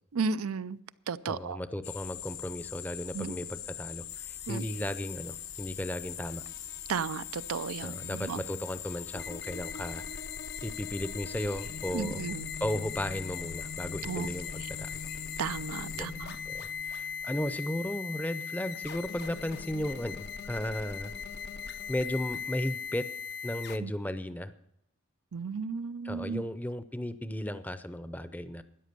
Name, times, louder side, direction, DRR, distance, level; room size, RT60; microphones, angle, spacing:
voice 1, 0.1-0.8 1.1-1.6 3.1-3.3 4.5-4.6 6.9-8.4 11.9-12.5 14.1-14.3 15.4-16.4 23.8-23.9 25.3-26.4, right 5 dB, 85° right, 0.5 m, -34 dB
voice 2, 1.2-6.4 7.8-10.2 10.6-12.2 12.6-15.0 15.9-16.1 16.5-21.1 21.9-23.1 23.4-24.5 26.0-28.6, left 1 dB, 10° left, 0.6 m, -35 dB
sound 1, 1.8-16.1, left 12 dB, 75° left, 1.0 m, -42 dB
sound 2, 4.1-23.8, left 6 dB, 50° left, 0.6 m, -41 dB
13.0 x 10.0 x 6.7 m
head